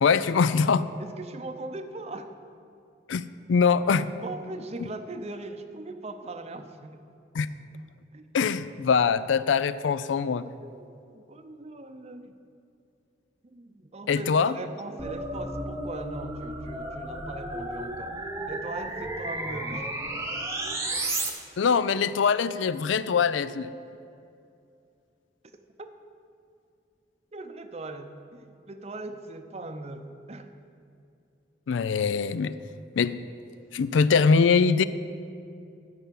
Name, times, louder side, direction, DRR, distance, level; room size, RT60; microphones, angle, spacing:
voice 1, 0.0-0.9 3.1-3.2 3.5-4.1 7.3-7.5 8.3-10.4 14.1-14.6 21.6-23.7 31.7-32.5 33.0-33.2 33.7-34.8, left 5 dB, 85° left, 15 dB, 0.4 m, -23 dB
voice 2, 1.0-2.3 4.2-7.0 8.1-8.2 9.0-9.1 10.7-12.4 13.4-18.2 18.5-20.2 25.8-25.9 27.3-30.5, right 2 dB, 35° right, 8 dB, 0.6 m, -40 dB
sound 1, 15.0-21.3, right 2 dB, 15° right, 0.9 m, -33 dB
12.5 x 5.6 x 7.5 m, 2.5 s
head